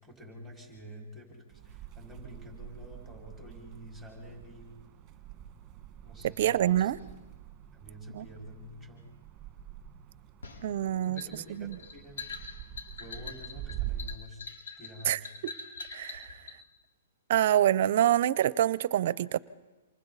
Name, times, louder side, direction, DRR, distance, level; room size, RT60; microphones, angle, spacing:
voice 1, 0.0-4.8 6.0-6.9 7.7-9.0 11.0-12.3 12.9-14.4 14.8-15.3, equal, 5° left, -1 dB, 5.4 m, -48 dB
sound 1, 1.5-14.2, right 11 dB, 20° right, 1.7 m, -45 dB
voice 2, 6.4-7.0 8.1-8.3 10.6-11.2 11.5-11.8 15.1-15.5 15.9-16.4 17.3-19.4, right 12 dB, 55° right, 19 dB, 0.6 m, -26 dB
sound 2, 10.4-16.6, left 4 dB, 85° left, 4.2 m, -43 dB
27.5 x 27.0 x 4.1 m, 1.2 s
hypercardioid pair, 150°, 0 cm